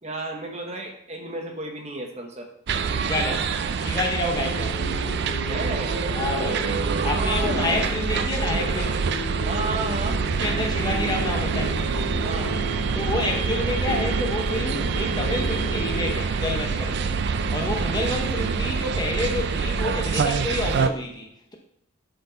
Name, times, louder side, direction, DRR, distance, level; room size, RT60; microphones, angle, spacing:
voice 1, 0.0-2.5 5.5-6.0 7.1-7.7 9.4-10.2 12.2-12.6 17.6-18.0, right 2 dB, 30° right, 3 dB, 1.0 m, -33 dB
sound 1, 2.7-20.9, right 5 dB, 50° right, 0.4 m, -26 dB
voice 2, 3.0-3.5 3.8-4.8 6.1-6.7 7.0-9.0 10.4-11.8 12.9-17.1 17.5-21.5, left 2 dB, 20° left, 1 dB, 0.8 m, -29 dB
sound 2, 4.3-16.1, left 3 dB, 55° left, 0.5 m, -35 dB
sound 3, 10.9-19.1, right 2 dB, 85° right, 2.2 m, -37 dB
11.0 x 4.5 x 3.9 m, 0.73 s
head